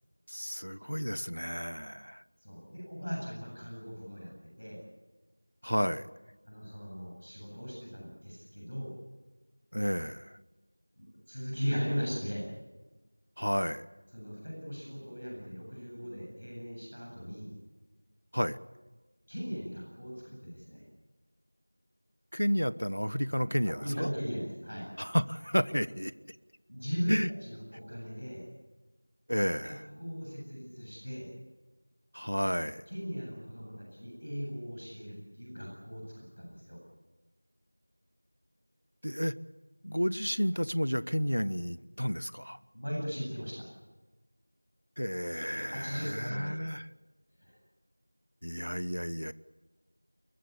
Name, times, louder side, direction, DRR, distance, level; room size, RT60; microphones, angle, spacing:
voice 1, 0.3-2.2 5.6-6.1 9.7-10.4 13.4-13.9 18.3-18.6 22.3-24.1 25.0-26.1 27.1-27.3 29.3-29.8 32.1-32.9 39.0-39.3 39.8-42.6 45.0-46.9 48.4-49.3, equal, 75° left, 17 dB, 1.0 m, -31 dB
voice 2, 2.4-4.8 6.4-8.9 11.0-12.5 14.1-17.5 19.3-20.8 23.7-24.9 26.7-28.5 29.6-31.3 32.9-36.8 42.7-43.7 45.7-46.5 47.4-47.6, equal, 50° left, -2 dB, 8.0 m, -38 dB
22.5 x 20.0 x 8.4 m, 1.2 s
figure-of-eight pair, 180°, 0 cm